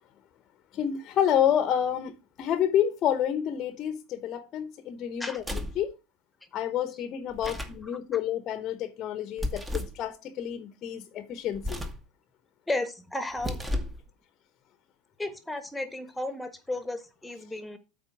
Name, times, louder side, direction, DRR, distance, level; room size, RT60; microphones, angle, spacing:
voice 1, 0.7-6.0 6.5-11.8, left 10 dB, 40° left, 0.9 m, -29 dB
sound 1, 5.4-5.8 7.3-7.8 9.4-10.0 11.5-12.1 13.3-14.0, left 1 dB, 15° right, 1.4 m, -33 dB
voice 2, 12.7-13.6 15.2-17.8, left 2 dB, 5° left, 1.5 m, -33 dB
8.4 x 4.2 x 5.9 m
hypercardioid pair, 85°, 0 cm